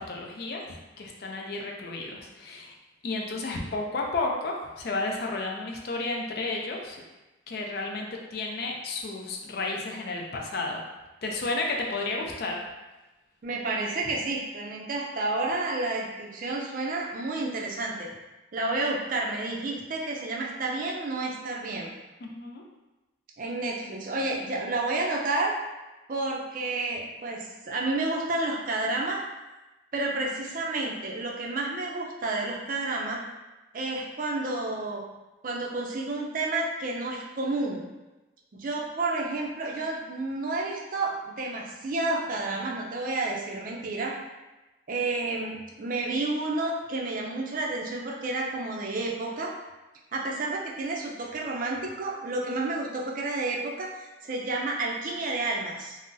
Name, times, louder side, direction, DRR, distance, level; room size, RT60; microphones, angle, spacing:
voice 1, 0.0-2.7 3.0-7.0 7.5-10.8 11.2-12.6 22.2-22.6, left 3 dB, 55° left, 0 dB, 0.4 m, -32 dB
voice 2, 13.4-18.1 18.5-21.9 23.4-25.6 26.1-29.2 29.9-33.2 33.7-35.0 35.4-37.8 38.5-44.1 44.9-49.5 50.1-56.0, right 2 dB, 45° right, -1 dB, 0.4 m, -30 dB
3.7 x 2.0 x 2.5 m, 1.1 s
head